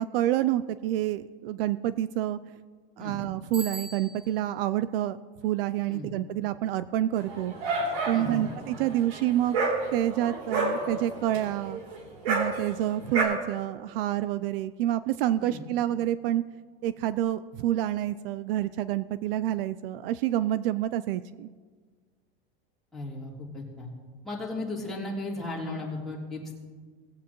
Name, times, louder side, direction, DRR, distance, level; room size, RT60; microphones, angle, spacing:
voice 1, 0.0-2.4 3.0-5.2 5.4-7.5 8.1-9.6 9.9-11.8 12.3-16.4 16.8-21.5, right 13 dB, 65° right, 15 dB, 0.4 m, -28 dB
Bicycle bell, 3.5-4.5, right 1 dB, 25° right, 2.2 m, -41 dB
Dog, 7.2-13.2, right 3 dB, 80° right, 3.0 m, -30 dB
voice 2, 8.1-8.4 15.4-15.6 22.9-23.9 24.2-26.6, left 2 dB, ahead, -8 dB, 3.3 m, -35 dB
19.5 x 8.1 x 3.0 m, 1.5 s
supercardioid pair, 135°, 31 cm